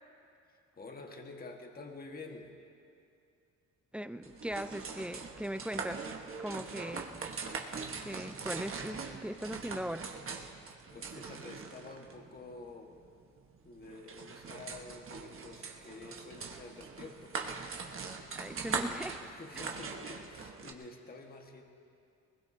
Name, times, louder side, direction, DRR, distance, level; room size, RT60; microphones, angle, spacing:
voice 1, 0.5-2.5 10.9-12.9 13.6-17.4 18.8-21.6, left 3 dB, 30° left, 2 dB, 1.6 m, -49 dB
voice 2, 3.9-6.0 6.4-7.2 8.0-10.1 18.4-19.2 19.5-19.7, equal, 5° right, 12 dB, 0.5 m, -39 dB
sound 1, 4.2-20.7, right 5 dB, 45° right, 1.4 m, -42 dB
22.0 x 20.5 x 2.8 m, 2.5 s
cardioid pair, 90°, 30 cm